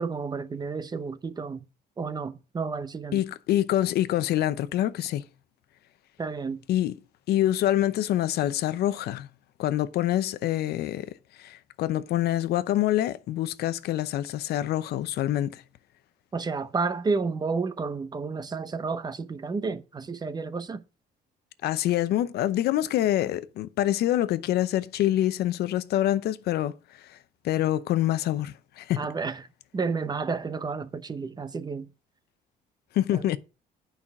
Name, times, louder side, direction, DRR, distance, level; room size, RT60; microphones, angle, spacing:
voice 1, 0.0-1.7 2.0-3.2 6.2-6.6 16.3-20.8 29.0-29.4 29.7-31.9 33.1-33.3, right 4 dB, 25° right, 0.8 m, -31 dB
voice 2, 3.1-5.2 6.7-6.9 7.3-9.3 9.6-11.1 11.4-15.6 21.6-26.7 27.0-27.1 27.4-29.0 32.9-33.4, left 13 dB, 70° left, 0.7 m, -26 dB
8.8 x 5.7 x 5.9 m
cardioid pair, 110°, 17 cm